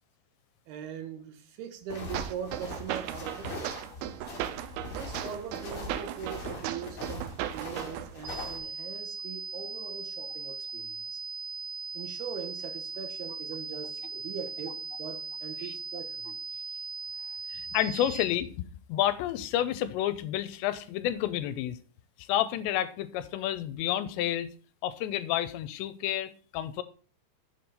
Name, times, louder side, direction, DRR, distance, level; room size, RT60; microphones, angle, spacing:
voice 1, 0.7-3.8 4.9-11.2 11.9-16.4 17.2-17.4, right 8 dB, 75° right, 2.9 m, -41 dB
sound 1, 1.9-8.6, left 1 dB, 35° left, 1.9 m, -41 dB
sound 2, 2.1-8.1, right 12 dB, 90° right, 2.1 m, -37 dB
sound 3, 8.2-18.2, right 5 dB, 55° right, 3.9 m, -39 dB
voice 2, 17.5-21.8 22.2-24.5 24.8-26.8, left 12 dB, 90° left, 2.8 m, -30 dB
7.0 x 6.1 x 5.4 m
omnidirectional pair, 5.1 m